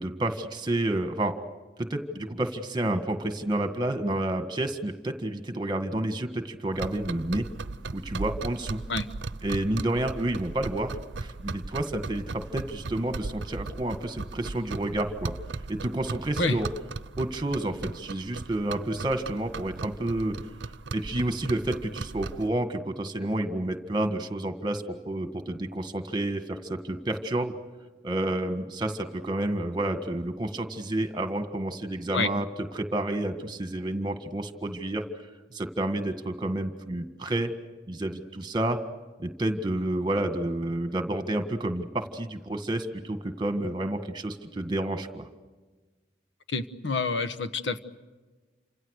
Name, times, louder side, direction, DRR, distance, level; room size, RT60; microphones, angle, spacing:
voice 1, 0.0-1.5 1.8-7.5 7.9-8.8 9.4-10.9 11.2-15.3 15.7-16.7 17.2-20.4 20.9-27.5 28.0-32.5 32.7-35.0 35.5-37.5 37.9-38.8 39.2-45.3, right 1 dB, 25° right, 7 dB, 1.7 m, -30 dB
sound 1, 6.7-22.5, right 3 dB, 85° right, 0.7 m, -37 dB
voice 2, 46.5-47.8, left 3 dB, 80° left, 11 dB, 1.3 m, -27 dB
29.0 x 26.5 x 6.6 m, 1.3 s
head